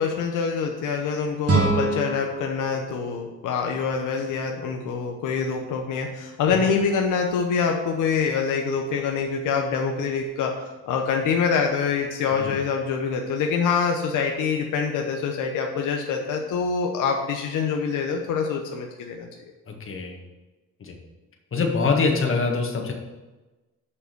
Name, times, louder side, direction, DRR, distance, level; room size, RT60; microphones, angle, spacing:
voice 1, 0.0-19.3, left 5 dB, 85° left, 2 dB, 0.9 m, -25 dB
sound 1, 1.4-4.5, right 3 dB, 50° right, 2.2 m, -27 dB
voice 2, 19.7-20.2 20.8-21.0 21.5-22.9, left 4 dB, 45° left, 2 dB, 1.7 m, -24 dB
6.7 x 5.5 x 6.7 m, 1.1 s
cardioid pair, 90°, 30 cm